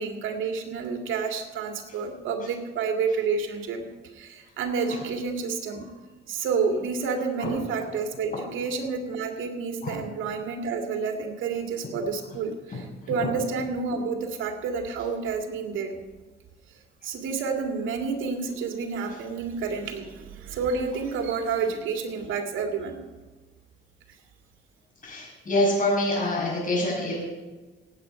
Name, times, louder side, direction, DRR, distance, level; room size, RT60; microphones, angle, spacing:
voice 1, 0.0-3.9 4.1-5.9 6.3-15.9 17.0-23.0, right 5 dB, 80° right, 3 dB, 2.2 m, -29 dB
voice 2, 25.0-27.1, left 1 dB, 45° left, -8 dB, 6.0 m, -25 dB
17.5 x 8.7 x 5.7 m, 1.3 s
cardioid pair, 90°, 20 cm